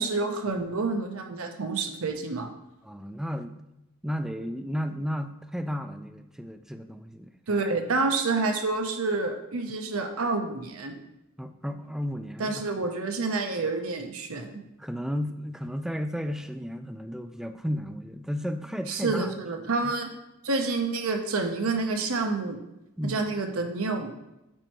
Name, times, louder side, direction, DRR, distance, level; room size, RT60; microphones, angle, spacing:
voice 1, 0.0-2.5 7.5-10.9 12.4-14.6 18.9-20.1 20.4-22.6 23.0-24.2, right 3 dB, 70° right, 4 dB, 0.8 m, -28 dB
voice 2, 2.8-3.6 4.0-7.3 11.4-12.7 14.8-19.3 19.8-19.9 23.0-23.2, equal, ahead, 8 dB, 0.3 m, -33 dB
8.9 x 3.1 x 4.5 m, 0.91 s
head